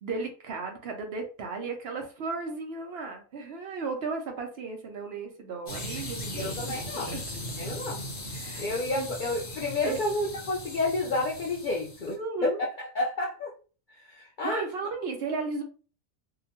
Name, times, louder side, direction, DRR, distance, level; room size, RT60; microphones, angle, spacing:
voice 1, 0.0-7.2 8.3-8.7 8.9-9.1 9.8-10.0 12.1-12.6 14.4-15.6, right 4 dB, 60° right, 3 dB, 0.7 m, -35 dB
sound 1, 5.7-12.1, left 1 dB, 45° left, 1.0 m, -38 dB
voice 2, 6.4-7.2 7.6-8.1 8.6-12.1 12.4-12.7 12.9-13.5 14.1-14.6, left 2 dB, 75° left, -2 dB, 0.4 m, -30 dB
2.7 x 2.1 x 2.8 m, 0.38 s
omnidirectional pair, 1.4 m